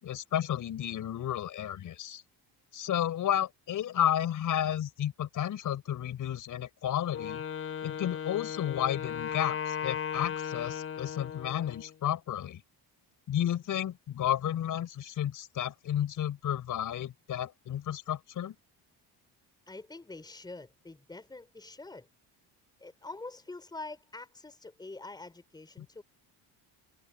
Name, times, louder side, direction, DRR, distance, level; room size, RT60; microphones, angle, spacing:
voice 1, 0.0-2.2 2.7-7.4 7.8-12.6 13.3-18.5 25.8-25.9, left 11 dB, 50° left, 5.6 m, -32 dB
Wind instrument woodwind instrument, 7.1-11.9, left 8 dB, 35° left, 3.9 m, -36 dB
voice 2, 19.7-22.1 22.8-26.0, left 2 dB, 10° left, 4.9 m, -45 dB
cardioid pair, 170°, 41 cm